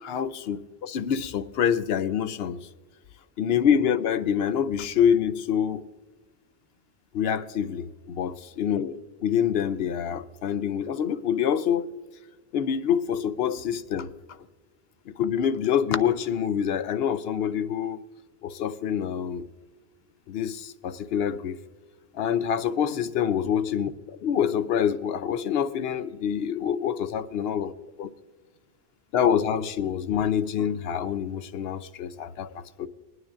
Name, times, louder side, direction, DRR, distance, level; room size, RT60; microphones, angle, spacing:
voice 1, 0.0-2.6 3.4-5.9 7.1-11.9 12.5-14.1 15.2-18.0 18.4-19.5 20.3-21.6 22.1-23.9 24.2-27.7 28.0-28.1 29.1-32.9, left 8 dB, 75° left, 0.8 m, -26 dB
21.5 x 9.5 x 2.5 m
omnidirectional pair, 1.0 m